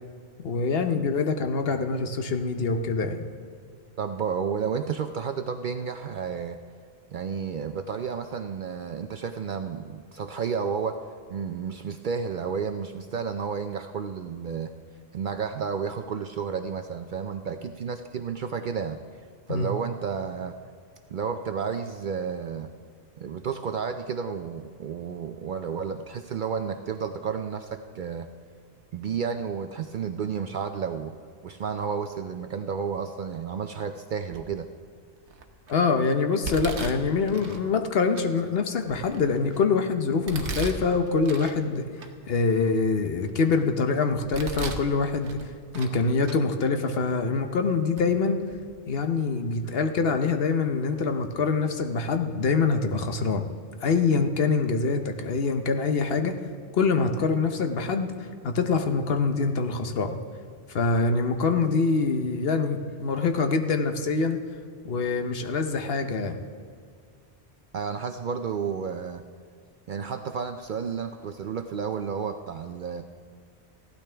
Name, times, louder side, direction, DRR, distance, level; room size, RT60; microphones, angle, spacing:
voice 1, 0.4-3.3 19.5-19.7 35.7-41.9 42.3-48.4 48.9-53.5 53.8-56.3 56.7-60.2 60.7-64.4 64.8-66.4, left 4 dB, 60° left, 6 dB, 1.0 m, -25 dB
voice 2, 4.0-6.6 7.1-11.0 11.3-14.7 15.1-19.0 19.5-20.5 21.1-22.7 23.2-28.3 28.9-31.1 31.4-34.7 67.7-69.2 69.9-73.0, right 6 dB, 60° right, 8 dB, 0.6 m, -31 dB
Domestic sounds home sounds, 34.3-34.7 35.3-35.7 36.4-37.6 38.2-38.3 38.8-39.6 40.3-41.6 42.0-42.1 42.7-43.6 44.1-44.9 45.2-46.0 46.2-46.4 47.2-47.3 48.0-48.1 48.4-48.6, right 4 dB, 80° right, 1.2 m, -36 dB
16.0 x 12.0 x 3.4 m, 2.1 s
omnidirectional pair, 1.2 m